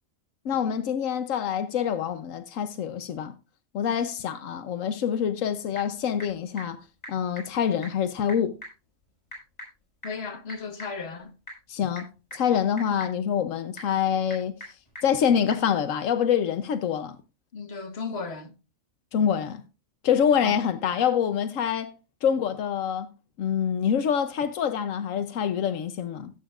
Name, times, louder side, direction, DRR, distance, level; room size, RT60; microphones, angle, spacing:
voice 1, 0.4-3.3 3.7-6.8 7.1-8.5 11.7-12.1 12.3-14.5 15.0-17.2 19.1-19.6 20.0-21.9 22.2-23.1 23.4-26.3, left 8 dB, 90° left, 1.2 m, -26 dB
Typing / Telephone, 5.2-15.7, equal, 30° left, 6.8 m, -47 dB
voice 2, 10.0-11.3 17.5-18.5 20.4-20.6, left 4 dB, 55° left, 1.7 m, -35 dB
17.5 x 8.5 x 2.5 m
omnidirectional pair, 1.3 m